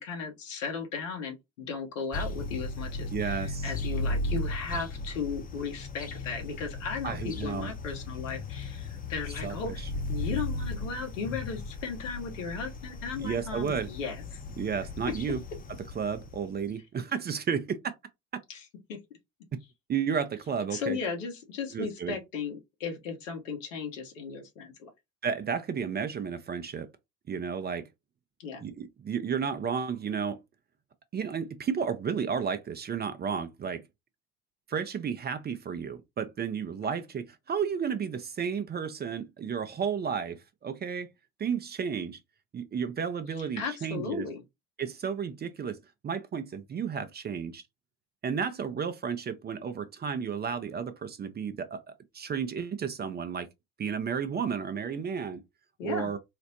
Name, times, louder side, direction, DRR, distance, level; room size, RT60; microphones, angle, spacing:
voice 1, 0.0-14.2 18.5-18.6 18.9-19.0 20.7-24.9 28.4-28.6 43.5-44.4 55.8-56.1, left 5 dB, 75° left, 1.1 m, -36 dB
sound 1, 2.1-16.7, left 2 dB, 25° left, 0.7 m, -36 dB
voice 2, 3.1-3.7 7.0-7.7 9.4-9.9 13.2-13.9 14.6-15.4 15.9-17.9 19.9-21.0 21.7-22.2 25.2-26.9 27.3-27.9 28.6-30.4 31.1-33.8 34.7-41.1 41.4-42.2 42.5-44.3 44.8-45.8 46.0-47.6 48.2-51.8 52.1-53.5 53.8-55.4 55.8-56.2, right 6 dB, 25° right, 0.6 m, -32 dB
4.0 x 2.1 x 2.8 m
hypercardioid pair, 65°, 38 cm